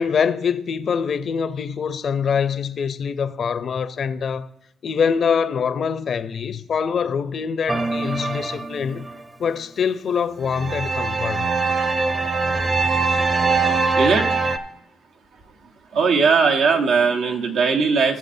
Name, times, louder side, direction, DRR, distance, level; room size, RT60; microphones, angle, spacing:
voice 1, 0.0-4.5 4.8-9.1 9.4-11.5, left 6 dB, 55° left, 0.6 m, -24 dB
sound 1, 7.7-9.1 10.5-14.6, right 3 dB, 25° right, 0.8 m, -22 dB
voice 2, 14.0-14.3 15.9-18.2, right 5 dB, 80° right, 1.3 m, -19 dB
16.5 x 6.5 x 2.7 m
cardioid pair, 90°, 0 cm